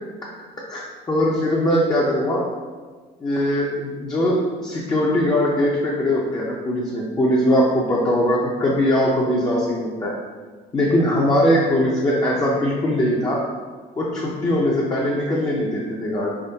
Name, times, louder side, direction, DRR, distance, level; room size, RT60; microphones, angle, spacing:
voice 1, 0.7-2.4 3.2-10.2 10.7-13.4 14.0-16.3, left 1 dB, 25° left, -4 dB, 0.5 m, -21 dB
3.5 x 3.2 x 2.7 m, 1.4 s
cardioid pair, 110°, 17 cm